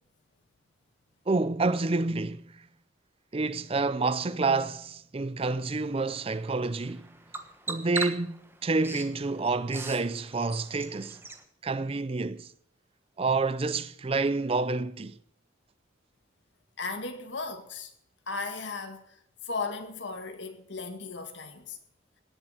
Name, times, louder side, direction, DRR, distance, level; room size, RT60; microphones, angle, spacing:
voice 1, 1.3-2.4 3.3-7.1 7.7-11.2 11.6-12.5 13.2-15.2, right 3 dB, 30° right, 0.5 m, -28 dB
Bird vocalization bird call bird song, 5.8-11.4, right 3 dB, 10° right, 1.2 m, -41 dB
voice 2, 16.8-17.9 18.3-21.8, left 4 dB, 65° left, 2.0 m, -36 dB
17.5 x 7.5 x 8.0 m
head